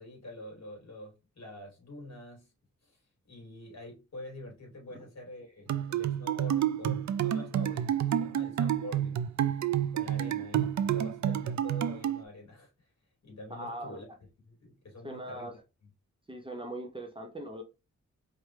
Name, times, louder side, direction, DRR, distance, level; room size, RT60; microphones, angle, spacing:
voice 1, 0.0-2.5 2.8-3.0 3.2-9.3 9.9-12.9 13.2-15.9, left 1 dB, 60° left, 2.9 m, -46 dB
sound 1, 5.7-12.2, right 10 dB, 70° right, 0.5 m, -29 dB
voice 2, 13.5-14.0 15.0-15.5 16.3-17.6, right 1 dB, 15° right, 0.8 m, -40 dB
4.7 x 3.1 x 3.2 m
wide cardioid pair, 160°, 30 cm